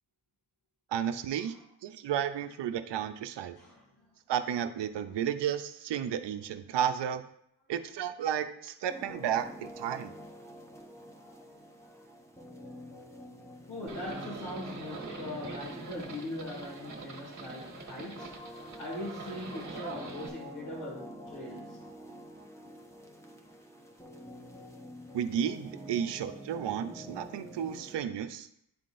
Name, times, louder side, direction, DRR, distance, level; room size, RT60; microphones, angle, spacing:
voice 1, 0.9-1.5 1.8-3.6 4.3-7.2 7.7-10.1 25.1-28.5, right 9 dB, 75° right, 9 dB, 0.6 m, -32 dB
voice 2, 3.6-4.1 11.1-12.1 13.7-21.8, left 1 dB, 90° left, -5 dB, 2.0 m, -42 dB
sound 1, 8.9-28.0, equal, 5° left, 0.8 m, -47 dB
Livestock farm animals working animals, 13.9-20.3, right 3 dB, 45° right, 1.3 m, -44 dB
10.5 x 3.7 x 2.5 m, 0.72 s
cardioid pair, 60°, 43 cm